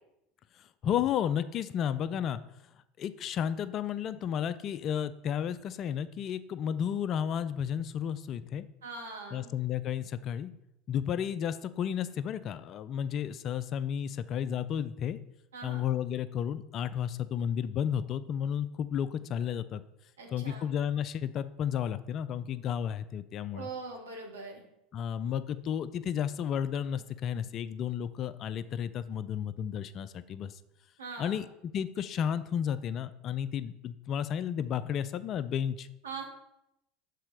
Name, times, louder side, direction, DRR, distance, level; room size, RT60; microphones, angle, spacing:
voice 1, 0.6-2.4 3.0-8.7 9.3-10.5 10.9-15.2 15.6-19.8 20.3-23.7 24.9-30.6 31.2-35.9, left 9 dB, 45° left, 14 dB, 0.4 m, -32 dB
voice 2, 8.8-9.5 15.5-15.9 20.2-20.7 23.5-24.6 31.0-31.4 36.0-36.2, right 4 dB, 85° right, 1 dB, 1.3 m, -42 dB
6.7 x 4.1 x 4.9 m, 0.84 s
hypercardioid pair, 80°, 0 cm